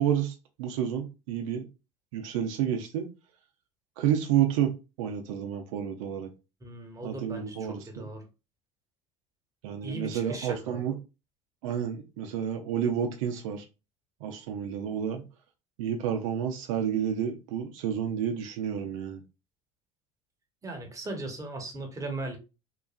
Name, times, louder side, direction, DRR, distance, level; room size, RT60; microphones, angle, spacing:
voice 1, 0.0-1.6 2.1-3.1 4.0-6.3 7.0-8.1 9.6-11.0 11.6-13.7 14.2-15.2 15.8-19.2, right 9 dB, 80° right, 4 dB, 0.5 m, -30 dB
voice 2, 6.6-8.2 9.8-10.8 20.6-22.4, right 2 dB, 20° right, 2 dB, 1.0 m, -38 dB
3.0 x 2.3 x 2.3 m, 0.29 s
hypercardioid pair, 80°, 17 cm